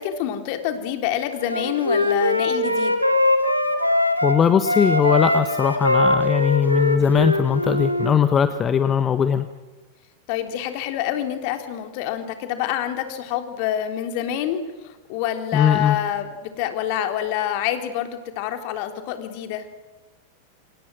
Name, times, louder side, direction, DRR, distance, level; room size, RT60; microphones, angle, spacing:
voice 1, 0.0-2.9 10.3-19.7, left 11 dB, 45° left, 7 dB, 3.4 m, -27 dB
Wind instrument woodwind instrument, 1.5-4.4 4.6-8.1, left 1 dB, 90° left, 2.6 m, -21 dB
voice 2, 4.2-9.5 15.5-16.0, left 7 dB, 25° left, 11 dB, 1.3 m, -19 dB
28.0 x 26.5 x 6.2 m, 1.2 s
figure-of-eight pair, 90°, 0 cm